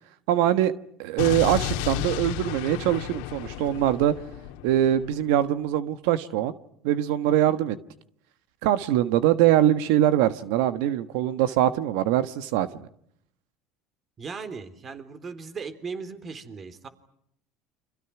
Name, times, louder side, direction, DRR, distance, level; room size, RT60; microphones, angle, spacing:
voice 1, 0.3-0.7 1.0-4.1 4.6-6.5 6.8-7.8 8.6-12.9, right 12 dB, 75° right, 12 dB, 1.3 m, -23 dB
Explosion, 1.2-5.2, left 12 dB, 75° left, 1.9 m, -32 dB
voice 2, 14.2-16.9, right 5 dB, 35° right, 10 dB, 3.6 m, -37 dB
30.0 x 26.0 x 6.1 m, 0.71 s
hypercardioid pair, 85°, 0 cm